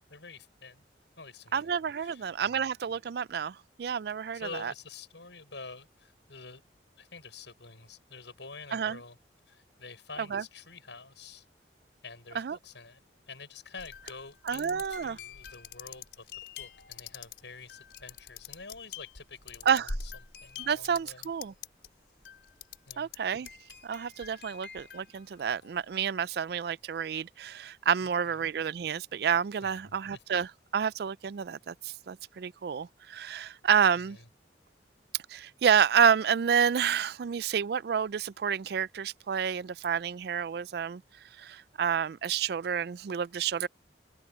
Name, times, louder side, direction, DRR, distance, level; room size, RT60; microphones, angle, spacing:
voice 1, 0.1-0.8 1.2-1.7 2.0-2.6 4.3-6.6 7.0-9.2 9.5-11.4 12.0-13.0 13.3-16.3 16.6-20.1 20.4-21.3 22.9-23.1 28.0-28.5 29.6-29.8 30.1-30.2 33.9-34.3, left 4 dB, 85° left, 6.4 m, -48 dB
voice 2, 1.5-4.7 8.7-9.0 10.3-10.4 12.3-12.6 14.5-15.2 19.7-19.9 20.6-21.5 23.0-23.5 23.8-34.2 35.3-41.0 41.4-43.7, right 7 dB, 60° right, 0.4 m, -29 dB
sound 1, 13.8-21.9 22.2-23.2 23.4-25.8, left 5 dB, 70° left, 4.8 m, -44 dB
open air
head